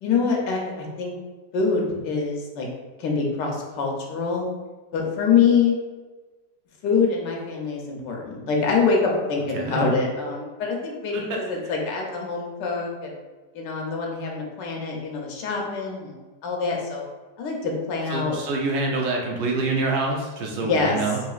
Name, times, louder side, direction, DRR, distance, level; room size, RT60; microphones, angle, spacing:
voice 1, 0.0-1.1 1.5-2.7 3.0-4.5 4.9-5.8 6.8-13.2 13.5-16.1 16.4-17.0 17.4-18.4 20.5-21.0, left 5 dB, 85° left, 0 dB, 1.3 m, -25 dB
voice 2, 9.5-9.9 11.1-11.4 11.6-11.7 18.1-21.2, right 3 dB, 70° right, 0 dB, 1.0 m, -26 dB
3.9 x 2.9 x 2.3 m, 1.3 s
omnidirectional pair, 1.9 m